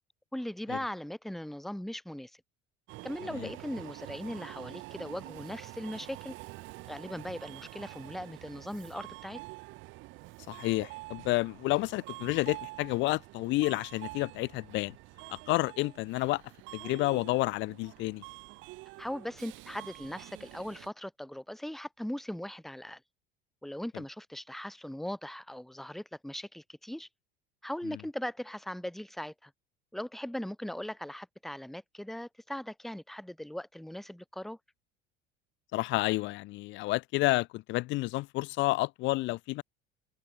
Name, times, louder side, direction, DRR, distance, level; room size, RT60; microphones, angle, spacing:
voice 1, 0.3-2.3 3.0-6.3 6.9-9.4 19.0-23.0 23.6-27.1 27.6-29.5 29.9-34.6, left 1 dB, ahead, 1.1 m, -39 dB
Subway metro underground, 2.9-20.9, right 22 dB, 70° right, 1.9 m, -47 dB
voice 2, 10.5-14.9 15.3-16.4 16.7-18.2 35.7-39.6, left 20 dB, 65° left, 0.9 m, -30 dB
supercardioid pair, 95°, 21 cm